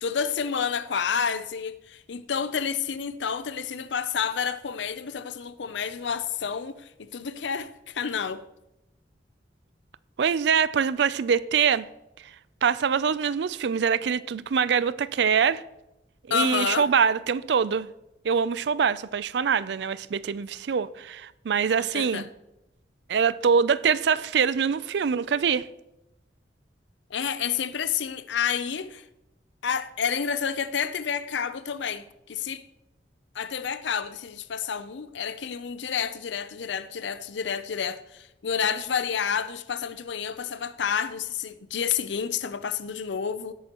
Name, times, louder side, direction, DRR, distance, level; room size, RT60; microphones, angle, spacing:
voice 1, 0.0-8.4 16.3-16.9 21.8-22.3 27.1-29.0 29.6-32.6 33.3-43.5, left 7 dB, 80° left, 0.5 m, -29 dB
voice 2, 10.2-11.9 12.6-15.6 16.3-17.9 18.2-22.3 23.1-25.6, right 6 dB, 70° right, 0.4 m, -24 dB
16.5 x 8.8 x 3.0 m
head